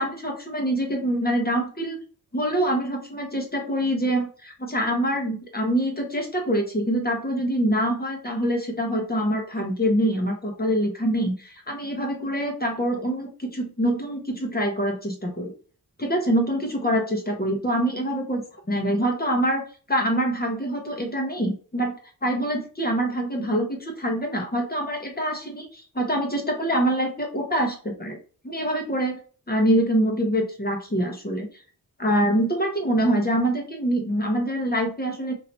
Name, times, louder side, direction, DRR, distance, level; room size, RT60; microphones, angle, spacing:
voice 1, 0.0-2.0 2.3-15.5 16.0-21.9 22.2-28.2 28.4-29.2 29.5-31.5 32.0-35.3, right 1 dB, 25° left, 1 dB, 1.2 m, -25 dB
3.0 x 2.9 x 2.8 m, 0.40 s
cardioid pair, 40°, 41 cm